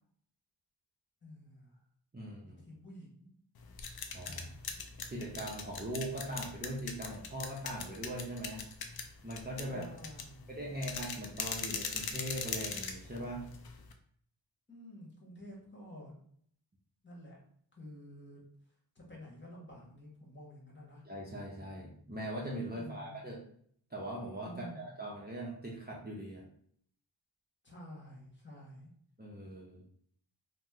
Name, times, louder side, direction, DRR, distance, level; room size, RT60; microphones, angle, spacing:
voice 1, 1.2-1.8 2.4-3.3 4.3-4.8 9.7-10.5 14.7-16.1 17.0-17.4 17.7-18.4 18.9-21.0 22.7-23.2 24.4-24.9 27.6-28.9, equal, 25° left, -3 dB, 1.1 m, -51 dB
voice 2, 2.1-2.6 4.1-4.4 5.1-8.6 9.2-9.8 10.5-13.4 21.1-23.4 23.9-26.4 29.2-29.9, right 1 dB, 20° right, -4 dB, 0.6 m, -41 dB
sound 1, 3.6-13.9, left 5 dB, 55° left, 0.5 m, -41 dB
2.9 x 2.1 x 3.5 m, 0.62 s
wide cardioid pair, 75°, 46 cm